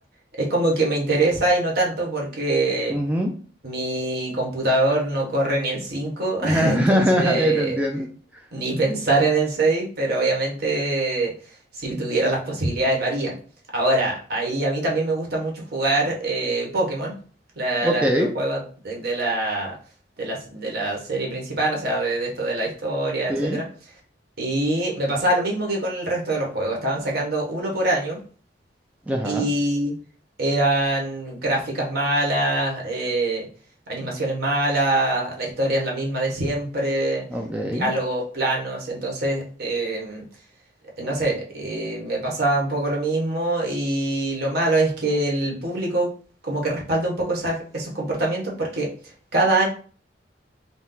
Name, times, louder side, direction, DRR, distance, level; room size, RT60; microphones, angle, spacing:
voice 1, 0.4-3.0 3.6-7.8 8.5-11.3 11.7-13.4 13.7-17.1 17.6-18.6 18.8-19.7 20.2-23.7 24.4-28.2 29.2-29.9 30.4-33.4 33.9-37.2 37.6-40.2 41.0-46.1 46.4-48.9 49.3-49.6, right 2 dB, 60° right, -2 dB, 1.3 m, -24 dB
voice 2, 2.9-3.3 6.4-8.1 17.8-18.3 23.3-23.6 29.1-29.5 37.3-37.9, equal, 10° right, 1 dB, 0.4 m, -22 dB
4.2 x 2.3 x 3.8 m, 0.42 s
head